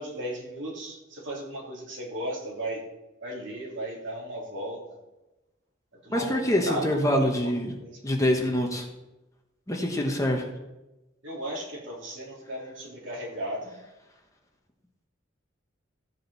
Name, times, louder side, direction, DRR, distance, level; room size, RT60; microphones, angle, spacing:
voice 1, 0.0-2.8 3.2-5.0 6.0-7.3 7.8-8.0 11.2-13.8, right 1 dB, 65° right, -4 dB, 3.4 m, -36 dB
voice 2, 6.1-7.8 8.0-8.9 9.7-10.5, equal, 15° left, 1 dB, 1.4 m, -25 dB
15.0 x 7.7 x 4.2 m, 1.0 s
head